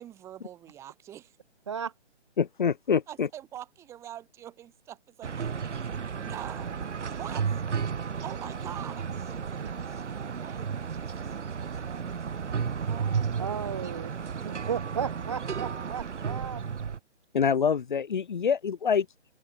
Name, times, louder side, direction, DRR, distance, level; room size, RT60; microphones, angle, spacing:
voice 1, 0.0-1.4 3.1-7.6 8.2-13.8 14.4-14.7, right 11 dB, 10° right, 3.2 m, -46 dB
voice 2, 2.4-3.3 17.3-19.1, left 6 dB, 45° left, 0.9 m, -25 dB
sound 1, 5.2-17.0, right 6 dB, 80° right, 1.3 m, -33 dB
voice 3, 9.6-10.0 13.4-14.1 14.4-16.6, right 7 dB, 25° right, 1.1 m, -35 dB
hypercardioid pair, 170°, 35 cm